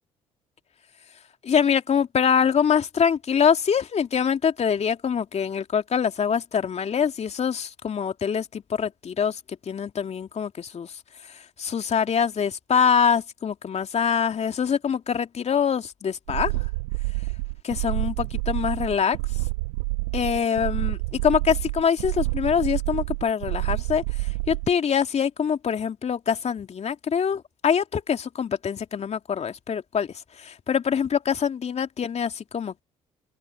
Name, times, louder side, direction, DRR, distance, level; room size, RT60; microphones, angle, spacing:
voice 1, 1.4-11.0 11.3-16.7 17.6-19.2 20.1-32.8, left 7 dB, 40° left, 2.6 m, -24 dB
sound 1, 16.3-24.7, right 25 dB, 75° right, 1.3 m, -28 dB
open air
hypercardioid pair, 50°, 16 cm